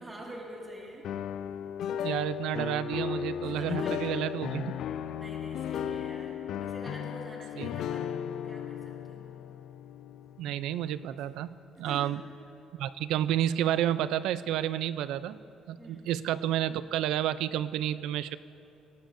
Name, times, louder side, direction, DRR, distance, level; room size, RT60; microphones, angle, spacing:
voice 1, 0.0-1.1 3.4-4.2 5.2-8.1 8.4-8.8 9.1-9.2 11.8-12.2 15.8-16.1, right 1 dB, 15° right, -3 dB, 1.9 m, -45 dB
sound 1, 1.0-11.0, left 9 dB, 60° left, 0.3 m, -35 dB
voice 2, 2.0-4.7 7.6-7.7 10.4-11.5 11.8-12.2 12.8-15.4 15.7-18.4, right 11 dB, 80° right, 15 dB, 0.3 m, -30 dB
18.5 x 14.5 x 2.6 m, 2.9 s
cardioid pair, 160°, 0 cm